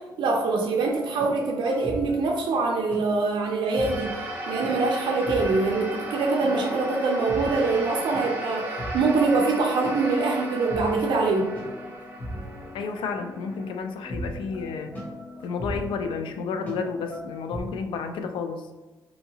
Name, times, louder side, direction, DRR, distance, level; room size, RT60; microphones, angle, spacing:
voice 1, 0.2-4.2 4.5-8.7 8.9-11.5, right 3 dB, 65° right, 0 dB, 0.4 m, -24 dB
sound 1, 0.8-17.6, equal, 20° left, 0.9 m, -39 dB
sound 2, 3.6-14.2, right 1 dB, 20° right, 0.6 m, -35 dB
voice 2, 12.7-14.9 15.4-18.6, left 5 dB, 75° left, 7 dB, 0.4 m, -31 dB
2.8 x 2.7 x 2.8 m, 1.2 s
cardioid pair, 125°, 9 cm